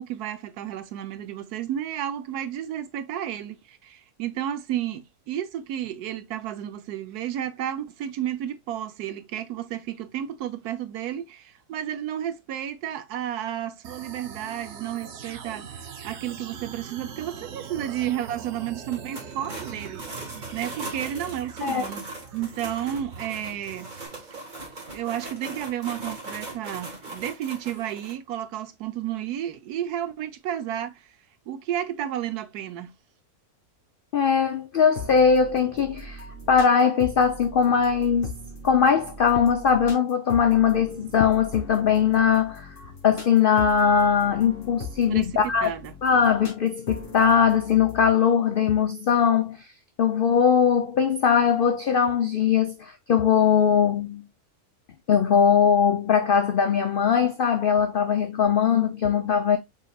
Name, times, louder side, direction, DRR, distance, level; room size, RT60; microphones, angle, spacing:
voice 1, 0.0-15.7 16.0-20.0 20.5-22.1 22.3-23.9 24.9-31.1 31.5-32.9 45.1-45.3 45.6-45.9, right 11 dB, 80° right, 1.2 m, -32 dB
sound 1, 13.8-24.1, right 6 dB, 55° right, 0.9 m, -42 dB
sound 2, 18.9-28.1, right 2 dB, 30° right, 1.8 m, -39 dB
voice 2, 34.1-38.3 38.6-42.7 43.0-45.7 46.0-49.6 50.0-54.3 55.1-59.6, left 7 dB, 70° left, 0.5 m, -21 dB
sound 3, 34.9-48.1, left 2 dB, 35° left, 1.5 m, -40 dB
5.5 x 4.0 x 2.3 m
omnidirectional pair, 1.6 m